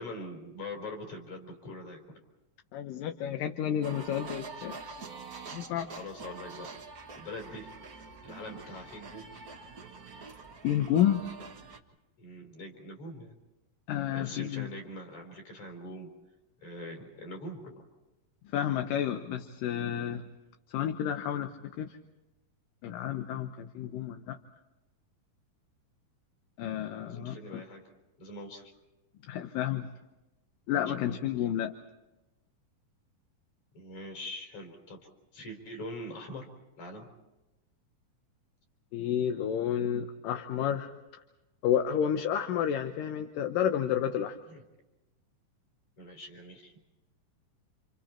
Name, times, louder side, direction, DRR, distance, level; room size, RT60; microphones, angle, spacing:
voice 1, 0.0-2.2 5.8-6.7 7.2-7.7 8.2-9.3 12.2-13.4 14.1-16.1 16.6-17.7 27.1-27.8 28.2-28.7 30.9-31.0 33.7-35.1 35.3-36.5 36.8-37.1 44.5-44.6 46.0-46.7, left 1 dB, 50° left, 2 dB, 5.5 m, -43 dB
voice 2, 2.7-4.8 5.5-5.9 10.6-11.2 13.9-14.7 18.5-20.2 20.7-22.0 22.8-24.4 26.6-27.6 29.3-29.9 30.7-31.7 38.9-40.9 41.6-44.4, left 10 dB, 70° left, 6 dB, 2.5 m, -30 dB
sound 1, 3.8-11.8, right 4 dB, 55° right, 1.0 m, -45 dB
30.0 x 28.0 x 4.4 m, 1.0 s
omnidirectional pair, 4.3 m